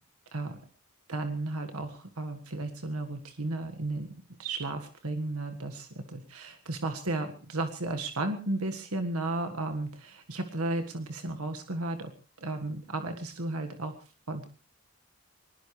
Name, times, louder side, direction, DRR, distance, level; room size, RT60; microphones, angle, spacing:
voice 1, 1.1-4.1 4.4-12.1 12.4-14.0 14.3-14.4, right 2 dB, 85° right, 6 dB, 1.6 m, -34 dB
22.0 x 19.5 x 3.3 m, 0.37 s
head